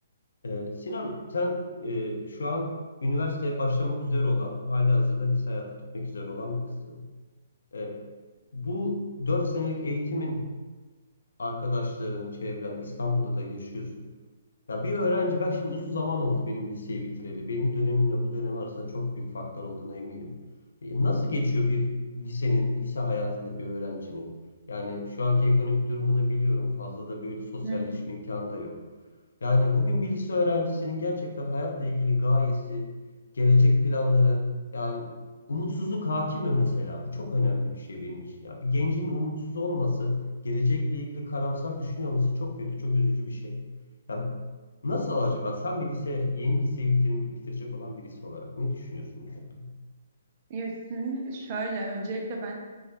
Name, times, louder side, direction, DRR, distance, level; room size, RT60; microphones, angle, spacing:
voice 1, 0.4-2.8 3.0-7.0 7.7-8.0 8.5-10.5 11.4-14.0 14.7-20.3 20.8-24.3 24.7-28.8 29.4-32.9 33.3-34.5 34.7-35.1 35.5-43.6 44.1-44.4 44.8-49.7, left 2 dB, 65° left, 1 dB, 0.5 m, -28 dB
voice 2, 27.6-28.0 50.5-52.5, right 2 dB, 35° right, 0 dB, 0.5 m, -32 dB
4.6 x 2.1 x 2.5 m, 1.3 s
figure-of-eight pair, 130°, 0 cm